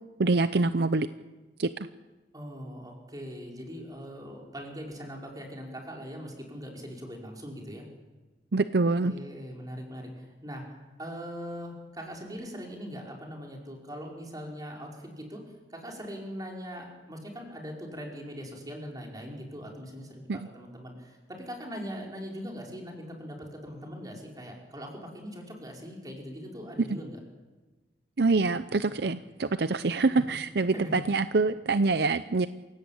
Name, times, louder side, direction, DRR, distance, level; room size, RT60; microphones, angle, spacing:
voice 1, 0.2-1.1 1.6-1.7 8.5-9.1 20.3-20.4 26.9-27.0 28.2-32.5, right 3 dB, 65° right, 12 dB, 0.7 m, -25 dB
voice 2, 2.3-7.8 9.0-15.4 15.7-27.2 30.1-30.2 30.7-30.9, equal, 20° right, 0 dB, 5.1 m, -41 dB
27.5 x 17.0 x 8.7 m, 1.2 s
head